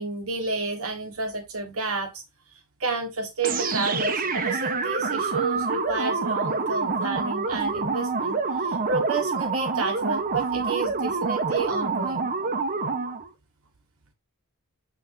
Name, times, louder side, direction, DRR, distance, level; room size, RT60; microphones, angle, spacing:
voice 1, 0.0-2.2 2.8-12.3, right 3 dB, 70° right, 1.5 m, -30 dB
sound 1, 3.4-13.3, right 4 dB, 40° right, 1.1 m, -27 dB
9.0 x 3.0 x 5.6 m
head